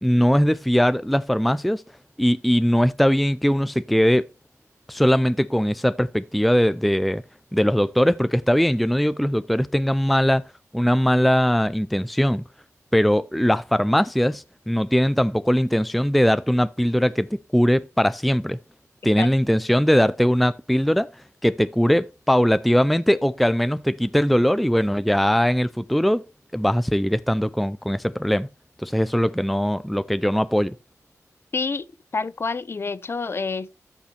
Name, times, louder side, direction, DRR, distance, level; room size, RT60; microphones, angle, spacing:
voice 1, 0.0-1.8 2.2-4.2 4.9-7.2 7.5-10.4 10.7-12.4 12.9-17.3 17.5-18.6 19.0-21.1 21.4-26.2 26.5-28.5 28.8-30.7, equal, ahead, 0.3 m, -20 dB
voice 2, 31.5-31.8 32.1-33.7, left 4 dB, 45° left, 0.6 m, -27 dB
13.5 x 5.2 x 3.3 m
wide cardioid pair, 85°, 6 cm